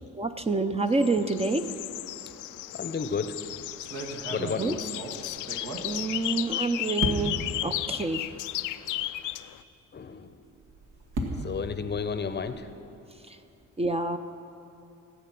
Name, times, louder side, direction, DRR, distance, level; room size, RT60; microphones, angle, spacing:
voice 1, 0.2-1.7 4.4-4.7 5.8-8.3 13.3-13.4 13.8-14.2, right 3 dB, 20° right, 8 dB, 0.6 m, -28 dB
sound 1, 0.9-9.6, left 15 dB, 85° left, 0.5 m, -34 dB
voice 2, 2.7-3.4 4.3-4.8 9.9-10.4 11.4-12.7, left 5 dB, 35° left, 10 dB, 0.7 m, -32 dB
sound 2, 2.9-3.3 3.8-6.5 7.0-7.6 8.3-8.4 8.7-8.8 10.5-12.8, right 1 dB, 75° right, 2.0 m, -36 dB
17.0 x 8.4 x 6.0 m, 2.7 s
cardioid pair, 90°, 30 cm